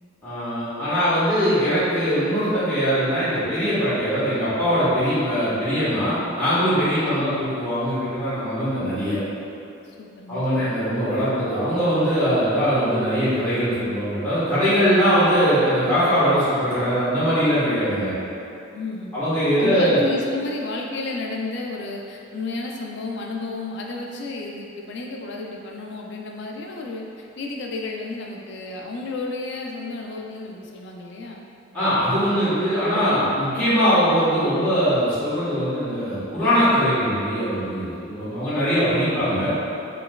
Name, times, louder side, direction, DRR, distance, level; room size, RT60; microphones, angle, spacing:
voice 1, 0.2-9.2 10.3-18.1 19.1-20.0 31.7-39.5, equal, 10° left, -16 dB, 1.1 m, -21 dB
voice 2, 7.0-7.3 9.8-10.4 18.7-19.1 19.6-31.5, left 3 dB, 55° left, 0 dB, 0.3 m, -32 dB
4.4 x 3.2 x 2.2 m, 2.7 s
head